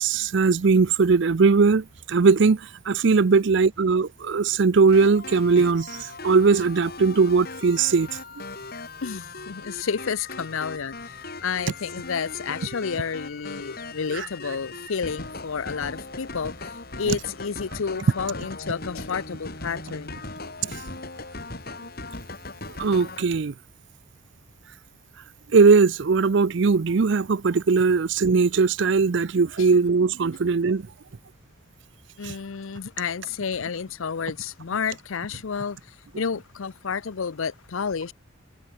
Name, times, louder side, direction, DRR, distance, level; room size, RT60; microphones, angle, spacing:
voice 1, 0.0-8.1 14.1-14.3 17.1-17.2 20.6-20.7 22.8-23.5 25.5-30.9 32.2-32.3, right 4 dB, 55° right, 0.5 m, -20 dB
sound 1, 4.9-23.2, left 3 dB, 45° left, 5.4 m, -39 dB
voice 2, 9.0-20.2 29.6-29.7 32.2-38.1, left 6 dB, 70° left, 0.6 m, -31 dB
head